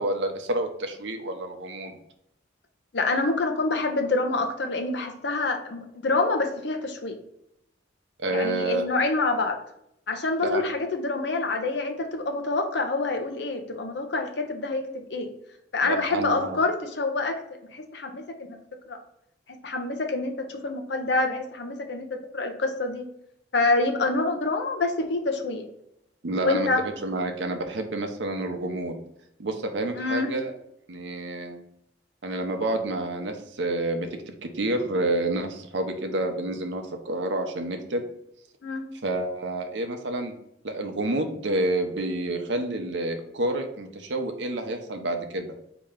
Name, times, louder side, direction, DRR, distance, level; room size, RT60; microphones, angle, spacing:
voice 1, 0.0-2.0 8.2-8.9 10.4-10.6 15.8-16.6 26.2-29.0 29.4-30.5 30.9-31.6 32.2-34.1 34.4-38.0 39.0-40.3 40.6-45.5, right 2 dB, 75° right, 5 dB, 0.7 m, -29 dB
voice 2, 2.9-7.2 8.3-9.6 10.1-15.3 15.7-17.4 17.7-18.2 18.5-18.6 18.9-19.0 19.5-22.1 22.3-23.1 23.5-25.6 26.4-26.8 30.0-30.3 38.6-38.9, left 3 dB, 65° left, 5 dB, 0.7 m, -26 dB
4.3 x 2.9 x 3.7 m, 0.77 s
head